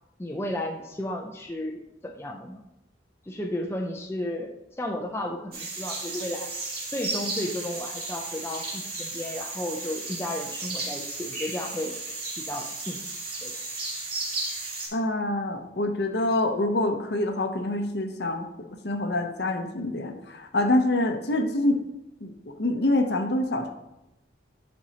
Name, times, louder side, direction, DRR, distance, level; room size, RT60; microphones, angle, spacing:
voice 1, 0.2-2.6 3.3-4.5 4.8-6.5 6.9-12.0 12.4-13.0 13.4-13.6, left 1 dB, 15° left, 2 dB, 0.4 m, -33 dB
sound 1, 5.5-14.9, right 3 dB, 55° right, 2.6 m, -34 dB
voice 2, 14.9-18.5 18.8-21.8 22.2-23.7, left 1 dB, 60° left, 5 dB, 0.7 m, -26 dB
8.9 x 5.3 x 2.8 m, 0.90 s
head